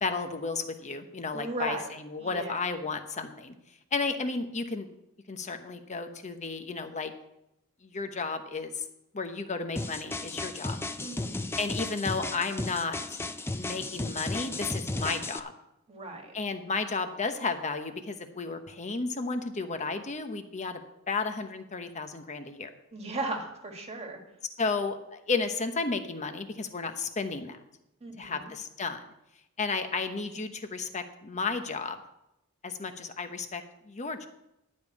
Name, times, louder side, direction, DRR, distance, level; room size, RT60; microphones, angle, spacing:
voice 1, 0.0-3.5 3.9-4.9 5.3-7.1 7.8-8.8 9.1-10.8 11.6-13.2 13.5-15.5 16.3-22.7 24.6-27.6 28.2-29.0 29.6-32.0 32.6-34.3, left 4 dB, 30° left, 7 dB, 0.9 m, -33 dB
voice 2, 1.3-1.9 2.2-2.6 11.0-11.5 15.9-16.3 22.9-24.2 28.0-28.5, right 2 dB, 30° right, 2 dB, 1.7 m, -36 dB
sound 1, 9.8-15.4, left 2 dB, 10° left, 0.4 m, -34 dB
11.5 x 5.3 x 8.4 m, 0.88 s
head